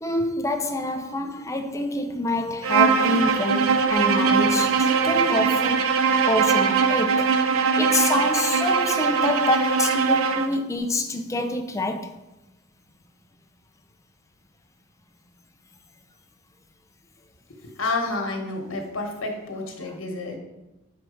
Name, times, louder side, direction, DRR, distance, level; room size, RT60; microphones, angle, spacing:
voice 1, 0.0-5.9 6.2-7.4 7.8-12.2, left 2 dB, 15° left, 0.5 m, -27 dB
Bowed string instrument, 2.6-10.5, right 5 dB, 80° right, 0.5 m, -21 dB
voice 2, 17.6-20.4, left 3 dB, 75° left, 1.2 m, -29 dB
6.3 x 4.5 x 4.9 m
head